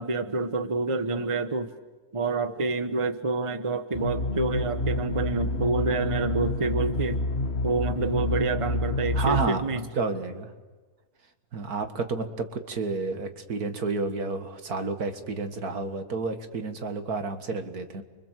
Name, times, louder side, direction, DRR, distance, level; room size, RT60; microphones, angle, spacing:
voice 1, 0.0-1.7 2.1-7.2 7.6-9.8, right 3 dB, 25° right, 10 dB, 1.1 m, -28 dB
sound 1, 3.9-9.5, left 2 dB, 45° left, 1.4 m, -28 dB
voice 2, 9.1-9.6 9.9-10.5 11.5-18.0, right 4 dB, 80° right, 7 dB, 2.3 m, -30 dB
29.0 x 24.5 x 7.6 m, 1.3 s
omnidirectional pair, 1.6 m